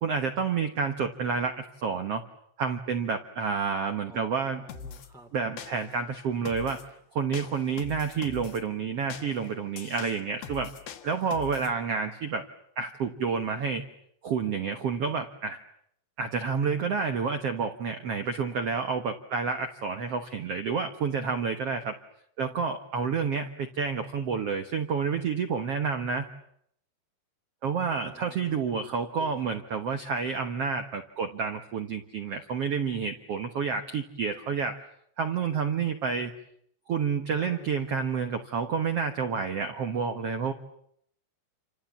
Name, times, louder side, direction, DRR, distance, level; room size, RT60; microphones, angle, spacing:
voice 1, 0.0-2.2 2.6-4.6 5.3-6.9 7.1-10.7 11.0-12.4 12.8-13.8 14.2-15.6 16.2-21.9 22.4-26.3 27.6-34.8 35.2-36.3 36.9-40.5, right 5 dB, 80° right, 7 dB, 1.3 m, -29 dB
voice 2, 4.0-5.3 28.0-29.6 37.4-37.9, right 1 dB, ahead, 2 dB, 1.2 m, -50 dB
sound 1, 4.7-5.1 5.6-6.0 6.5-6.9 7.3-8.6 9.1-11.7, left 7 dB, 70° left, 3.5 m, -42 dB
28.5 x 27.0 x 7.3 m, 0.70 s
omnidirectional pair, 4.9 m